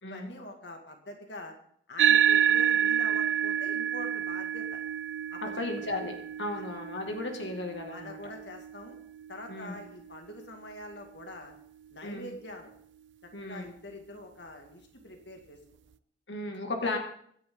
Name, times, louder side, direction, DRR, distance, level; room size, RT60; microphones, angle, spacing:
voice 1, 0.0-1.5 1.9-4.8 5.3-5.7 6.5-6.6 7.9-9.0 9.3-11.5 11.9-12.7 13.2-15.6 16.8-16.9, left 1 dB, 70° left, 3 dB, 2.2 m, -45 dB
sound 1, 2.0-10.7, right 9 dB, 90° right, 0.5 m, -29 dB
voice 2, 5.6-8.2 9.5-9.8 12.0-12.3 13.3-13.7 16.3-17.0, left 2 dB, 90° left, 2 dB, 2.3 m, -35 dB
25.5 x 10.5 x 3.9 m, 0.66 s
head